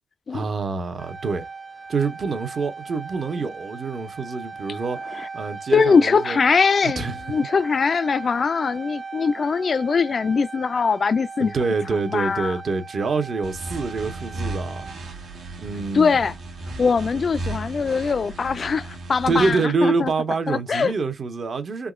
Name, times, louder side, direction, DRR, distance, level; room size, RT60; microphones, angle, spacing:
voice 1, 0.3-1.5 1.9-6.4 6.8-7.2 11.4-14.8 15.6-16.2 19.3-21.9, right 4 dB, 55° right, 0.9 m, -26 dB
sound 1, 1.0-14.9, right 4 dB, 30° right, 0.4 m, -38 dB
voice 2, 5.7-11.5 12.1-12.6 15.9-16.3 16.8-20.1 20.5-20.9, left 5 dB, 50° left, 0.3 m, -21 dB
sound 2, 13.4-19.5, right 2 dB, 80° right, 1.2 m, -35 dB
3.6 x 2.9 x 2.4 m
cardioid pair, 80°, 0 cm